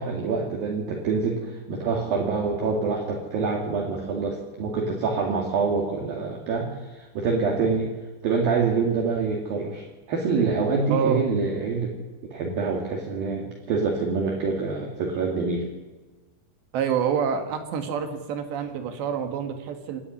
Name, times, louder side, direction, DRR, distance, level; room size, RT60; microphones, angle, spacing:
voice 1, 0.0-7.9 8.2-11.9 12.3-15.7, right 4 dB, 55° right, 0 dB, 3.7 m, -26 dB
voice 2, 10.9-11.2 16.7-20.0, right 7 dB, 75° right, 6 dB, 3.9 m, -27 dB
26.5 x 11.0 x 9.8 m, 1.2 s
omnidirectional pair, 5.2 m